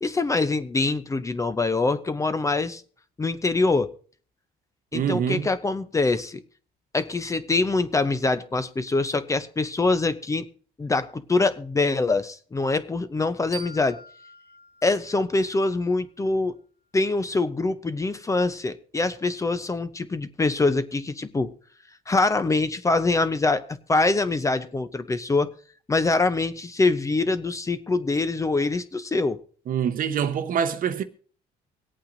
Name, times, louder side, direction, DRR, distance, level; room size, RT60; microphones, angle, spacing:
voice 1, 0.0-2.8 3.2-3.9 4.9-6.4 6.9-10.5 10.8-14.0 14.8-16.6 16.9-21.5 22.1-23.6 23.9-25.5 25.9-29.4, left 3 dB, 20° left, 0.6 m, -24 dB
voice 2, 4.9-5.5 29.7-31.0, right 8 dB, 55° right, 0.9 m, -25 dB
sound 1, 13.5-16.3, right 1 dB, 70° left, 1.9 m, -45 dB
24.5 x 8.6 x 2.6 m
cardioid pair, 110°, 17 cm